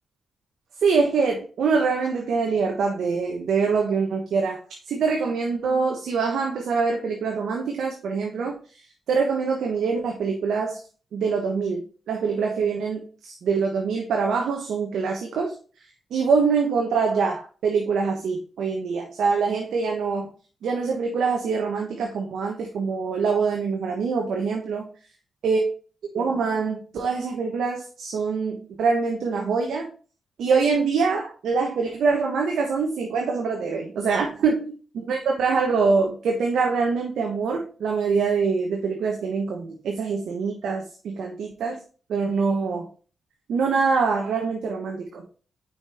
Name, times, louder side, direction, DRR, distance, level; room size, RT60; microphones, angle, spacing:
voice 1, 0.8-4.6 4.9-8.5 9.1-10.8 11.1-15.5 16.1-20.3 20.6-24.9 25.4-25.6 26.1-29.9 30.4-34.7 35.1-41.7 42.1-42.9 43.5-45.2, right 5 dB, 80° right, 0 dB, 1.2 m, -24 dB
5.8 x 5.3 x 4.4 m, 0.38 s
cardioid pair, 55°, 0 cm